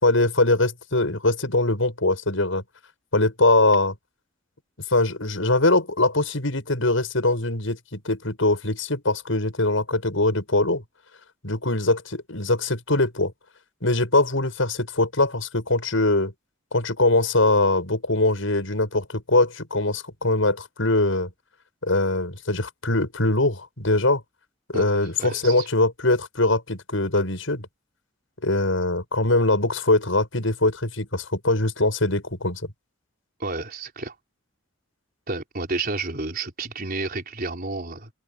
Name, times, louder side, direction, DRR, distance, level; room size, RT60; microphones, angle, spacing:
voice 1, 0.0-2.6 3.1-3.9 4.9-10.8 11.4-13.3 13.8-16.3 16.7-21.3 21.8-24.2 24.7-27.7 28.4-32.6, left 2 dB, 80° left, 6.6 m, -22 dB
voice 2, 25.2-25.7 33.4-34.1 35.3-38.1, right 3 dB, 50° right, 4.5 m, -30 dB
open air
head